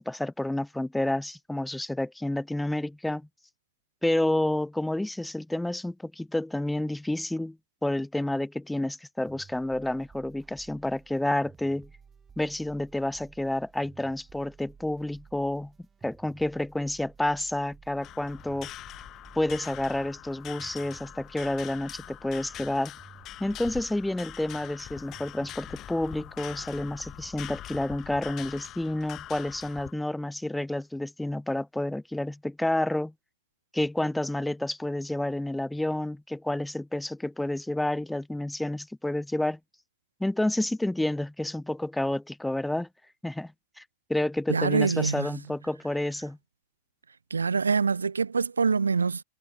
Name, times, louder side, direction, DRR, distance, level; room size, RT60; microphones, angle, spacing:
voice 1, 0.0-3.3 4.0-7.6 7.8-11.9 12.4-15.7 16.0-18.7 19.3-22.9 23.4-33.1 33.7-39.6 40.2-42.9 43.2-43.8 44.1-46.4, left 1 dB, 5° left, 0.6 m, -29 dB
sound 1, 9.3-27.5, right 6 dB, 20° right, 2.8 m, -55 dB
sound 2, 18.0-29.9, left 14 dB, 35° left, 1.1 m, -43 dB
voice 2, 44.5-45.4 47.3-49.2, right 5 dB, 75° right, 0.7 m, -25 dB
figure-of-eight pair, 90°, 0 cm